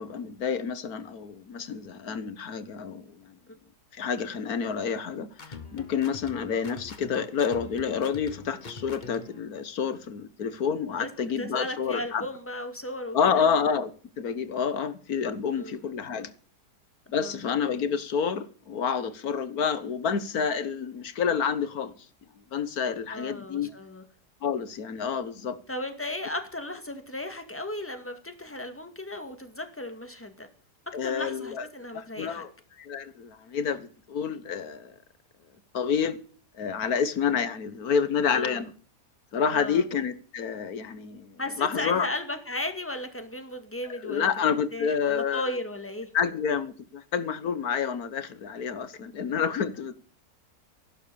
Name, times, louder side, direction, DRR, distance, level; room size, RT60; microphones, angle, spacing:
voice 1, 0.0-3.3 3.9-12.2 13.1-16.3 17.1-21.9 22.5-23.7 24.4-25.6 30.9-31.7 31.9-32.5 32.8-34.9 35.7-36.2 36.6-38.7 39.3-42.1 44.0-45.6 46.1-50.0, left 6 dB, 65° left, 1.7 m, -29 dB
sound 1, 5.3-9.4, left 4 dB, 30° left, 1.3 m, -43 dB
voice 2, 11.4-13.5 15.5-15.8 17.1-17.4 23.1-24.0 25.7-30.5 31.0-32.4 38.3-38.6 39.5-39.8 41.4-46.1, left 1 dB, 10° left, 2.0 m, -35 dB
14.5 x 12.0 x 7.0 m
omnidirectional pair, 1.7 m